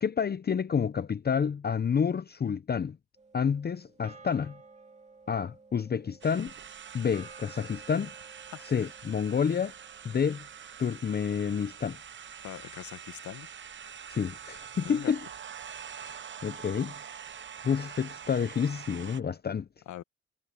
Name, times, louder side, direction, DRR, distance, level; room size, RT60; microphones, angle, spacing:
voice 1, 0.0-3.0 3.3-4.6 5.3-6.5 6.9-8.1 8.7-9.7 10.0-10.4 10.8-12.0 14.1-15.2 16.0-16.9 17.6-19.7, left 7 dB, 35° left, 0.7 m, -29 dB
sound 1, 3.2-11.7, right 4 dB, 25° right, 2.6 m, -55 dB
sound 2, 6.2-19.2, right 8 dB, 40° right, 0.9 m, -45 dB
voice 2, 8.5-8.9 12.4-13.5 14.8-15.1 19.9-20.0, left 13 dB, 75° left, 1.2 m, -42 dB
cardioid pair, 90°, 30 cm